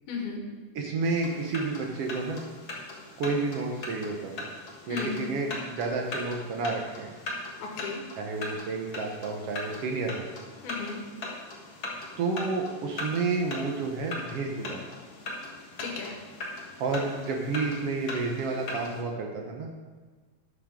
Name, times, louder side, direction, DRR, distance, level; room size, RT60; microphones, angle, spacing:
voice 1, 0.1-0.4 4.9-5.2 7.6-8.0 10.6-11.0 15.8-16.2, left 5 dB, 85° left, 0 dB, 3.4 m, -35 dB
voice 2, 0.7-2.4 3.2-4.5 4.9-7.1 8.2-10.3 12.2-14.8 16.8-19.7, right 3 dB, 80° right, 1 dB, 1.3 m, -30 dB
sound 1, 1.0-19.0, left 2 dB, 50° left, 1.5 m, -40 dB
12.0 x 9.2 x 3.7 m, 1.4 s
omnidirectional pair, 4.2 m